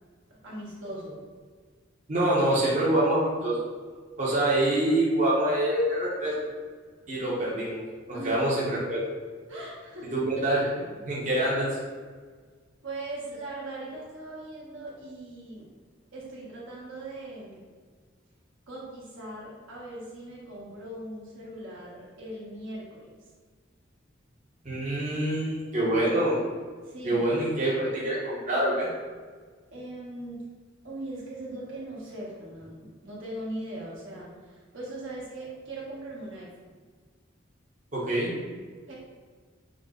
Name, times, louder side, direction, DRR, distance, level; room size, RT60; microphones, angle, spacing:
voice 1, 0.3-1.2 8.1-8.4 9.5-10.1 12.8-15.7 16.1-17.6 18.7-23.3 26.8-27.2 29.7-30.4 30.8-36.7 38.9-39.0, right 1 dB, 80° right, -6 dB, 1.3 m, -40 dB
voice 2, 2.1-3.6 4.2-6.4 7.1-7.8 8.1-9.0 10.1-11.7 24.6-26.4 27.0-28.9 37.9-38.3, right 1 dB, 40° right, -7 dB, 0.8 m, -25 dB
5.1 x 2.1 x 3.7 m, 1.5 s
head